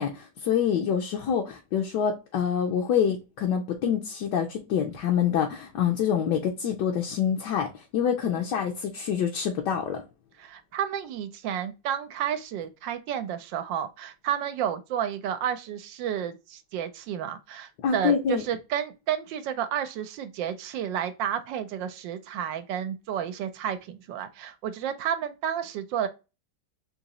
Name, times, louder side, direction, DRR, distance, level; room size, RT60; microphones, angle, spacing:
voice 1, 0.0-10.0 17.8-18.4, left 8 dB, 70° left, 1.3 m, -26 dB
voice 2, 10.4-26.1, right 9 dB, 80° right, 1.3 m, -31 dB
4.0 x 2.8 x 2.9 m
omnidirectional pair, 2.0 m